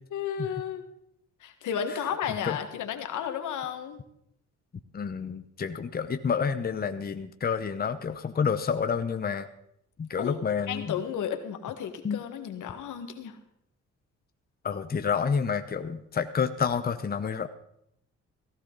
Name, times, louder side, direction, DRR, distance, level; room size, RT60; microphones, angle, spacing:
voice 1, 0.1-0.8 1.4-4.0 10.1-10.4 10.7-13.4, left 8 dB, 80° left, 7 dB, 1.9 m, -33 dB
voice 2, 4.9-9.5 10.0-10.9 12.0-12.2 14.6-17.5, left 6 dB, 30° left, 9 dB, 0.9 m, -29 dB
17.0 x 15.0 x 4.1 m, 0.76 s
cardioid pair, 90°, 30 cm